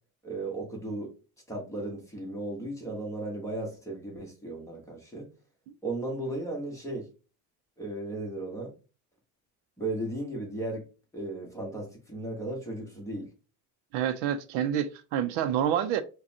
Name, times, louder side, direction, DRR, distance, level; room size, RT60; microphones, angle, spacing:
voice 1, 0.2-1.1 1.5-5.3 5.8-7.1 7.8-8.7 9.8-10.9 11.1-13.3, right 2 dB, 5° left, 1.1 m, -35 dB
voice 2, 13.9-16.0, right 10 dB, 70° right, 0.6 m, -28 dB
5.0 x 2.3 x 2.7 m
cardioid pair, 150°, 41 cm